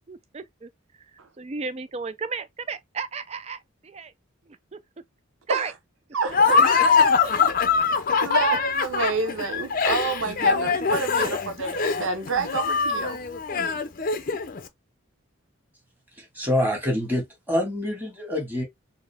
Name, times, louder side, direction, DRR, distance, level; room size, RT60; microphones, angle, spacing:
voice 1, 0.1-0.7 1.4-4.1 4.7-4.8 5.5-5.7 7.2-7.3, right 5 dB, 30° right, 0.4 m, -33 dB
voice 2, 6.1-6.6 8.2-13.2, right 4 dB, 75° right, 0.7 m, -28 dB
Laughter, 6.3-14.6, left 5 dB, 45° left, 0.5 m, -22 dB
voice 3, 16.2-18.6, left 1 dB, 10° right, 1.7 m, -26 dB
4.3 x 2.7 x 3.3 m
head